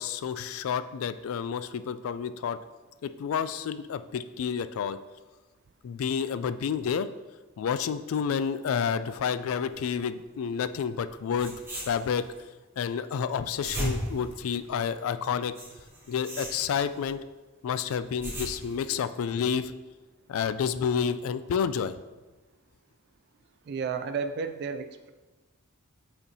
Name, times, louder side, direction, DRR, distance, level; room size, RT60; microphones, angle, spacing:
voice 1, 0.0-2.6 3.0-5.0 5.8-7.1 7.6-11.5 11.9-12.2 12.8-15.5 16.1-17.2 17.6-19.7 20.3-22.0, left 7 dB, 75° left, 12 dB, 0.3 m, -29 dB
sound 1, 11.3-12.4 13.3-15.0 15.6-17.1 17.9-19.0, equal, 10° right, 1.6 m, -37 dB
voice 2, 23.7-25.1, right 5 dB, 55° right, 8 dB, 0.3 m, -32 dB
8.0 x 4.3 x 2.8 m, 1.2 s
head